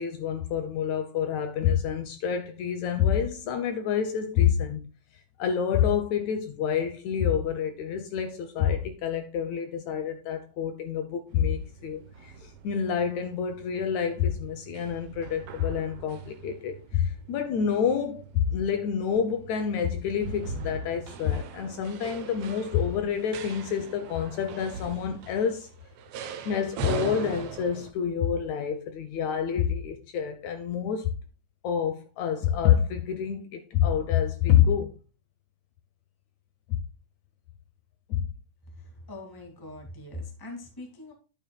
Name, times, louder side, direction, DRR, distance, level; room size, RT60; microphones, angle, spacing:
voice 1, 0.0-4.9 5.4-25.7 26.5-31.1 31.6-35.0 38.1-38.3, left 8 dB, 75° left, 1.9 m, -27 dB
sound 1, 11.3-27.9, right 6 dB, 70° right, 1.5 m, -41 dB
voice 2, 38.8-41.1, left 2 dB, 10° left, 1.4 m, -42 dB
11.5 x 7.6 x 2.2 m
omnidirectional pair, 3.6 m